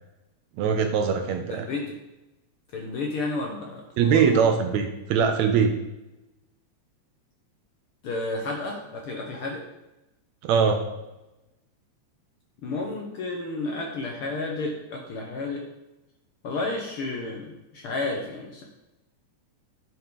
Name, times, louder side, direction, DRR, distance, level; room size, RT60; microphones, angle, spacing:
voice 1, 0.6-1.7 4.0-5.8 10.4-10.8, right 6 dB, 75° right, 6 dB, 1.9 m, -22 dB
voice 2, 1.5-2.0 2.7-4.5 8.0-9.6 12.6-15.6 16.4-18.7, left 3 dB, 60° left, 0 dB, 1.5 m, -31 dB
10.5 x 5.5 x 3.9 m, 0.98 s
omnidirectional pair, 3.5 m